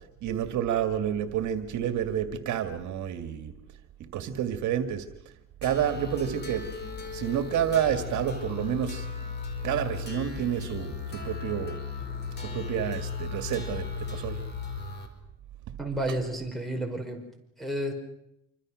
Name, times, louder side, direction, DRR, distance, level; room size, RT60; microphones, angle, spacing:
voice 1, 0.2-3.5 4.1-5.1 5.6-9.1 9.6-11.8 12.4-14.4, right 9 dB, 70° right, 8 dB, 2.1 m, -29 dB
sound 1, 5.6-15.1, left 5 dB, 35° left, 4.8 m, -36 dB
voice 2, 15.8-17.2 17.6-17.9, right 1 dB, ahead, 5 dB, 5.2 m, -31 dB
27.0 x 25.0 x 6.4 m, 0.82 s
cardioid pair, 135°, 30 cm